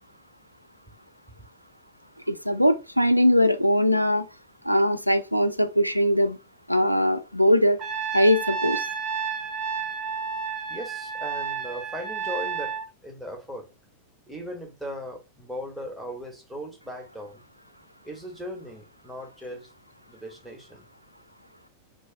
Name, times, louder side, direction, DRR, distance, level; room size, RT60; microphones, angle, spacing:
voice 1, 2.3-4.2 4.6-6.4 6.7-7.8 8.1-8.9, equal, 90° right, 0.3 m, -21 dB
Trumpet, 7.8-12.9, right 6 dB, 30° right, 0.8 m, -31 dB
voice 2, 10.7-12.7 13.0-13.7 14.3-17.4 18.0-19.7 20.1-20.8, equal, ahead, 1.1 m, -38 dB
2.5 x 2.3 x 3.7 m
figure-of-eight pair, 90°, 0 cm